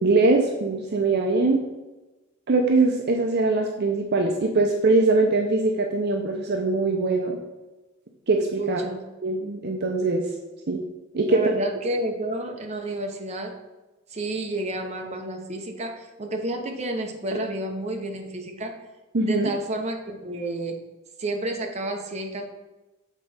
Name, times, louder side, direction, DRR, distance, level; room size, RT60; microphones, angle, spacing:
voice 1, 0.0-1.6 2.5-7.4 8.3-8.8 9.2-10.3 10.7-10.8 11.1-11.4 19.1-19.5, right 3 dB, 50° right, 2 dB, 0.6 m, -22 dB
voice 2, 8.6-9.0 11.3-13.5 14.1-18.8 19.2-20.8 21.2-22.4, right 1 dB, 30° right, 2 dB, 0.9 m, -30 dB
7.6 x 4.0 x 5.0 m, 1.1 s
head